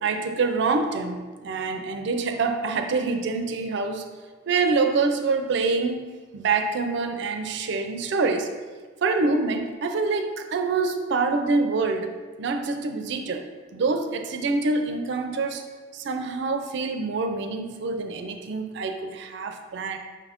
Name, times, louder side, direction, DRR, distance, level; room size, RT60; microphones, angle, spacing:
voice 1, 0.0-4.1 4.5-6.0 6.3-8.5 9.0-13.5 13.7-15.6 15.9-20.0, right 4 dB, 60° right, 6 dB, 0.4 m, -26 dB
5.6 x 2.5 x 3.4 m, 1.4 s
head